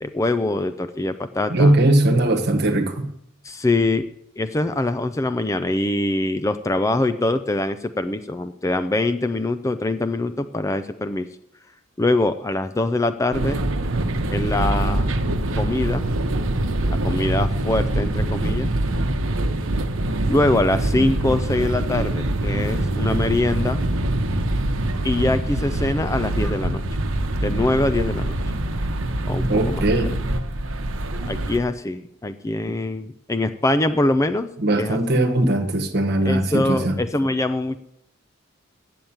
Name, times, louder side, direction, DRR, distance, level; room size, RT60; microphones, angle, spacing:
voice 1, 0.0-1.7 3.4-4.1 4.4-11.3 12.0-13.7 14.3-15.1 15.6-16.0 16.9-18.7 20.3-23.8 25.0-26.8 27.4-28.4 29.2-29.8 31.3-34.5 34.8-35.0 36.2-37.8, left 2 dB, 15° left, 11 dB, 0.4 m, -23 dB
voice 2, 1.5-3.1 29.5-30.2 34.6-37.0, right 1 dB, 50° right, 6 dB, 1.3 m, -19 dB
sound 1, 13.3-31.6, right 1 dB, 70° right, 0.9 m, -24 dB
8.5 x 7.8 x 8.9 m, 0.79 s
head